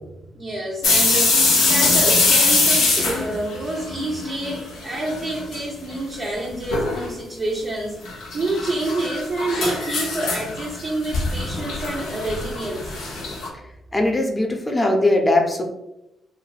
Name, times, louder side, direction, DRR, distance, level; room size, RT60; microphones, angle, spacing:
voice 1, 0.0-12.9, right 2 dB, 45° right, -4 dB, 0.5 m, -28 dB
sound 1, 0.8-4.6 4.9-5.6 5.9-6.0 6.7-7.1 8.1-13.5, left 3 dB, 75° left, 0.6 m, -22 dB
voice 2, 13.9-15.6, left 1 dB, 20° left, 2 dB, 0.6 m, -19 dB
2.3 x 2.1 x 3.2 m, 0.90 s
hypercardioid pair, 40°, 0 cm